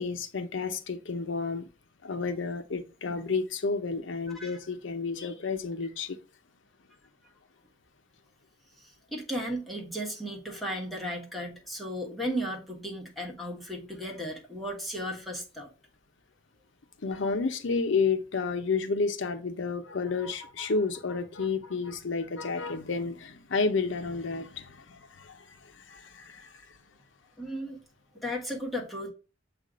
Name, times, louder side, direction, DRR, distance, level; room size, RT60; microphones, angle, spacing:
voice 1, 0.0-1.7 2.0-6.2 17.0-26.7, left 4 dB, 75° left, 0.7 m, -31 dB
voice 2, 8.8-15.7 27.4-27.8 28.1-29.1, equal, ahead, 1.3 m, -35 dB
7.5 x 2.5 x 5.0 m
head